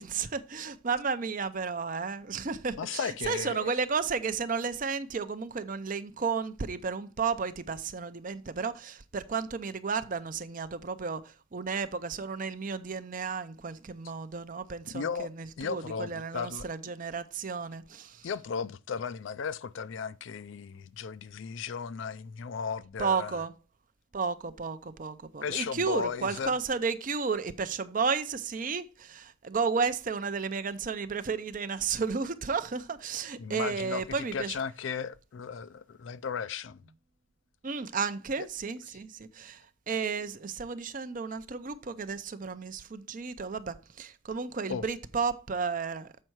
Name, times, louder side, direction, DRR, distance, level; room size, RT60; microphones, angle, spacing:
voice 1, 0.0-18.3 23.0-23.5 24.1-34.5 37.6-46.1, right 5 dB, 40° right, 0.5 m, -33 dB
voice 2, 2.8-3.7 14.9-15.3 15.6-16.7 18.2-23.4 25.4-26.6 33.4-36.8 38.4-38.5 38.9-39.0 44.7-44.9, left 6 dB, 60° left, 0.4 m, -35 dB
7.5 x 5.5 x 4.5 m
head